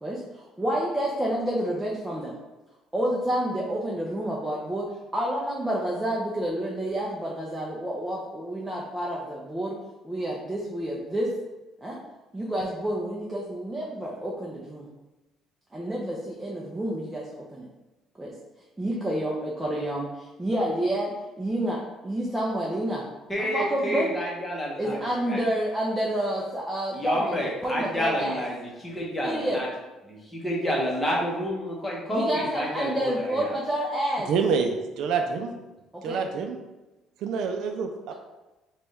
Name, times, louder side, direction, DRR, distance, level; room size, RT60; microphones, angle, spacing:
voice 1, 0.0-2.4 2.9-4.9 5.1-9.8 10.0-11.3 11.8-12.0 12.3-14.9 15.7-17.7 18.2-18.3 18.8-23.1 23.4-24.1 24.8-27.4 27.6-28.4 29.2-29.6 30.7-30.8 32.1-34.3 35.9-36.2, right 1 dB, 10° right, -4 dB, 0.4 m, -29 dB
voice 2, 23.3-25.0 25.3-25.4 26.9-29.7 30.1-33.5, equal, 15° left, -3 dB, 0.8 m, -29 dB
voice 3, 34.3-35.5 36.0-36.6 37.2-38.1, right 5 dB, 70° right, 4 dB, 0.4 m, -27 dB
3.4 x 2.2 x 4.0 m, 1.1 s
cardioid pair, 150°, 0 cm